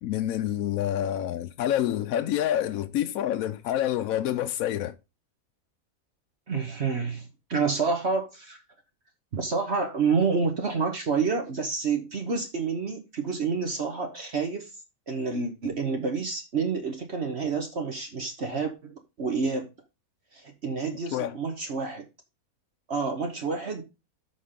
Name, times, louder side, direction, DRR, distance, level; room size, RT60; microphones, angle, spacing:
voice 1, 0.0-4.9 21.1-21.3, left 11 dB, 75° left, 1.0 m, -27 dB
voice 2, 6.5-8.6 9.3-14.7 15.1-19.7 20.3-22.0 22.9-23.8, right 5 dB, 50° right, 1.3 m, -28 dB
13.0 x 4.3 x 3.7 m
omnidirectional pair, 1.5 m